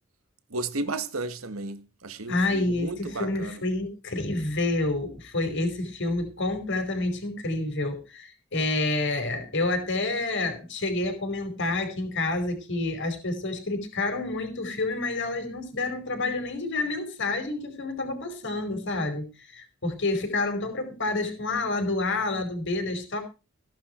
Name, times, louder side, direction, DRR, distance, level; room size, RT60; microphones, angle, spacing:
voice 1, 0.5-3.6, right 2 dB, 80° right, 1.8 m, -33 dB
voice 2, 2.3-19.3 19.5-23.2, left 2 dB, 60° left, 5.0 m, -28 dB
17.5 x 11.0 x 4.5 m
head